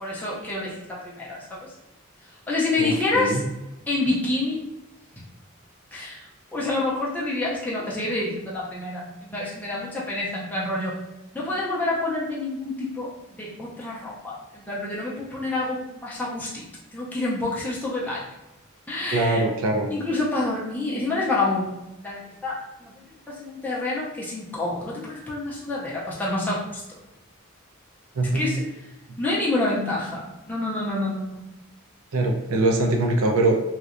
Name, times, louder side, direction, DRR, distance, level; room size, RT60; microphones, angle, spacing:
voice 1, 0.0-1.7 2.5-3.4 3.9-4.6 5.9-6.3 6.5-11.0 11.3-13.1 13.4-16.6 16.9-18.2 18.9-19.4 19.9-21.7 22.0-26.8 28.3-28.6 29.2-31.4, left 2 dB, 10° left, -6 dB, 0.4 m, -28 dB
voice 2, 2.8-3.4 19.1-19.9 28.2-28.4 32.1-33.6, right 2 dB, 80° right, 2 dB, 0.4 m, -22 dB
2.7 x 2.1 x 2.4 m, 0.96 s
head